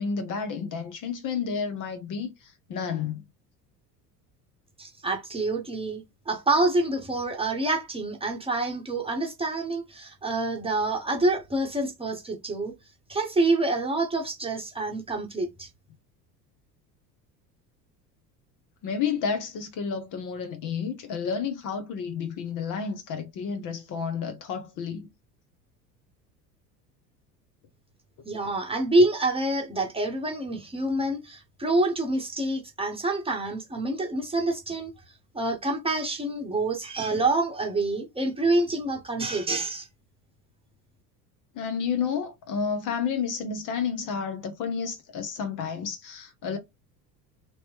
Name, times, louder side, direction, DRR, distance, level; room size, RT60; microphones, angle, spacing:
voice 1, 0.0-3.2 18.8-25.1 41.5-46.6, left 6 dB, 40° left, 0.8 m, -31 dB
voice 2, 4.8-12.7 13.1-15.7 28.2-34.9 35.3-39.9, right 2 dB, 10° right, 1.1 m, -27 dB
3.0 x 2.9 x 3.0 m
figure-of-eight pair, 70°, 50 cm